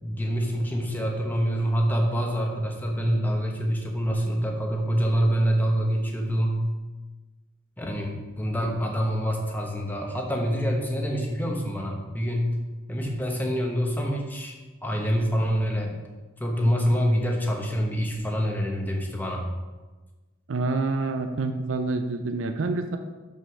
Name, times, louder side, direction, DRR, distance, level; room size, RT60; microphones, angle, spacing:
voice 1, 0.0-6.6 7.8-12.5 12.9-14.5 14.8-16.0 16.4-19.5, equal, 10° left, 0 dB, 1.0 m, -26 dB
voice 2, 20.5-23.0, right 3 dB, 75° right, 6 dB, 0.5 m, -27 dB
5.6 x 5.6 x 6.4 m, 1.2 s
head